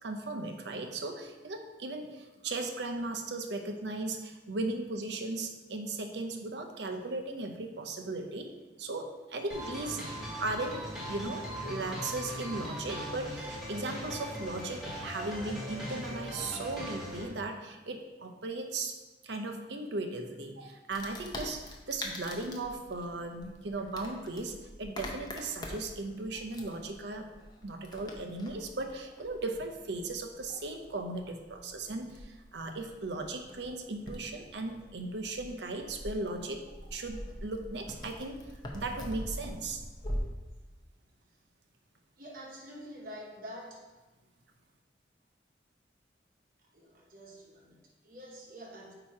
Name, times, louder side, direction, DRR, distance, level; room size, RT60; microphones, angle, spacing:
voice 1, 0.0-8.5 8.8-10.1 10.4-19.0 19.2-20.6 20.9-27.3 27.6-36.6 36.9-38.4 38.7-39.8, right 2 dB, 75° right, 5 dB, 0.7 m, -37 dB
sound 1, 9.5-17.3, equal, ahead, 1.4 m, -39 dB
Wood, 20.9-40.2, left 1 dB, 25° left, 0.7 m, -44 dB
voice 2, 42.2-43.8 46.7-48.9, equal, 50° right, -2 dB, 1.0 m, -47 dB
8.6 x 2.9 x 4.8 m, 1.2 s
head